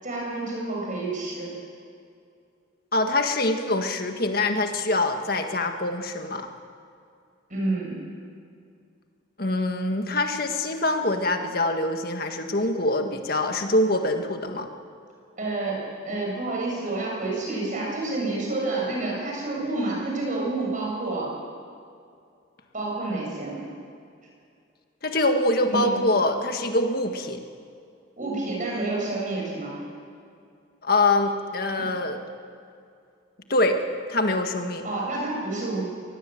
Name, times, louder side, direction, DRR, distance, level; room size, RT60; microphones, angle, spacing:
voice 1, 0.0-1.5 7.5-8.0 15.4-21.3 22.7-23.6 25.7-26.0 28.2-29.7 31.8-31.9 34.8-35.8, right 2 dB, 40° right, -3 dB, 7.6 m, -29 dB
voice 2, 2.9-6.5 9.4-14.7 25.0-27.4 30.8-32.2 33.5-33.8 34.1-34.8, left 2 dB, 45° left, 5 dB, 1.7 m, -24 dB
24.0 x 19.0 x 7.8 m, 2.4 s
head